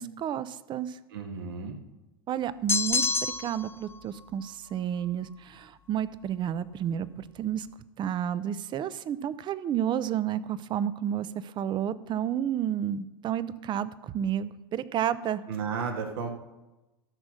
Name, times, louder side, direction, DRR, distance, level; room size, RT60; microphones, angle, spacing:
voice 1, 0.0-1.0 2.3-7.1 7.4-7.7 8.0-15.4, right 10 dB, 40° right, 17 dB, 0.7 m, -31 dB
voice 2, 1.1-1.7 15.5-16.3, right 5 dB, 75° right, 3 dB, 1.8 m, -33 dB
sound 1, 2.7-3.7, left 5 dB, 20° left, 0.6 m, -27 dB
13.0 x 6.3 x 6.3 m, 1.1 s
hypercardioid pair, 90°, 13 cm